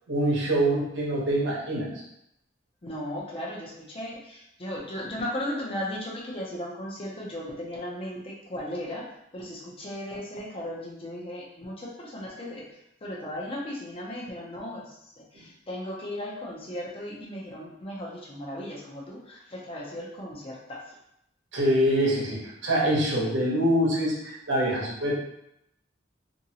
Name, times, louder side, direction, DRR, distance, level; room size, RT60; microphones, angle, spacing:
voice 1, 0.1-1.9 21.5-25.1, right 1 dB, 70° right, -4 dB, 0.9 m, -25 dB
voice 2, 2.8-9.1 9.3-21.0, left 1 dB, 30° left, -3 dB, 0.6 m, -36 dB
2.8 x 2.6 x 2.8 m, 0.80 s
head